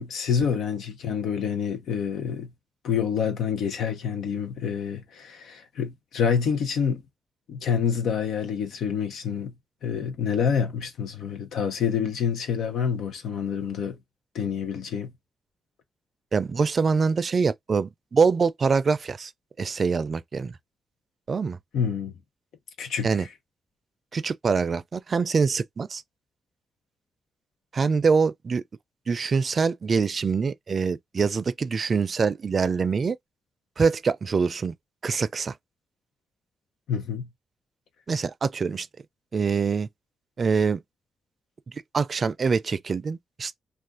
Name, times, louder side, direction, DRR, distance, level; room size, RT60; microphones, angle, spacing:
voice 1, 0.0-2.5 2.8-7.0 7.5-9.5 9.8-14.0 14.3-15.1 21.7-22.1 22.8-23.3 36.9-37.3, left 7 dB, 90° left, 0.7 m, -27 dB
voice 2, 16.3-19.3 19.6-20.5 21.3-21.6 23.0-23.3 24.1-26.0 27.7-28.6 29.1-33.2 33.8-34.7 35.0-35.5 38.1-38.9 39.3-39.9 40.4-40.8 41.9-43.5, right 5 dB, 50° right, 0.4 m, -24 dB
2.5 x 2.4 x 3.6 m
cardioid pair, 80°, 0 cm